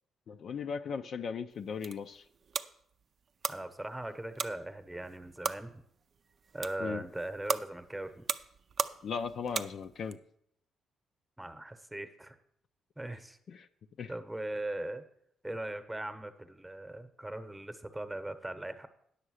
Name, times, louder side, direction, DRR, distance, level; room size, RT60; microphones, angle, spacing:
voice 1, 0.3-2.2 6.8-7.1 9.0-10.2 13.5-13.7 14.0-14.1, left 6 dB, 60° left, 8 dB, 0.5 m, -37 dB
sound 1, 1.5-10.2, right 6 dB, 50° right, 0.5 m, -39 dB
voice 2, 3.5-5.8 6.5-8.3 11.4-12.4 13.0-13.4 14.1-15.0 15.4-18.9, right 1 dB, 10° right, 9 dB, 1.0 m, -39 dB
10.0 x 6.6 x 6.4 m, 0.70 s
cardioid pair, 90°, 0 cm